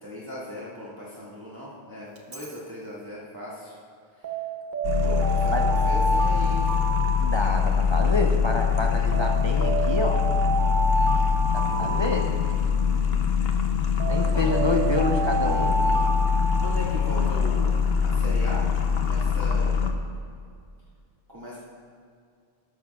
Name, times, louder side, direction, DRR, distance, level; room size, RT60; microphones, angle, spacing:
voice 1, 0.0-3.7 5.0-6.7 11.7-12.1 14.3-14.5 16.6-18.7 19.0-19.7 21.3-21.6, left 1 dB, 20° right, -9 dB, 1.7 m, -37 dB
Alarm, 2.2-2.5 4.2-8.0 9.1-12.9 14.0-17.2, right 3 dB, 50° right, 1.1 m, -29 dB
sound 1, 4.8-19.9, left 6 dB, 70° left, 1.0 m, -23 dB
voice 2, 7.2-10.2 11.5-12.3 14.0-15.8, left 2 dB, 30° left, 1 dB, 0.7 m, -28 dB
13.5 x 12.5 x 2.3 m, 2.2 s
omnidirectional pair, 1.1 m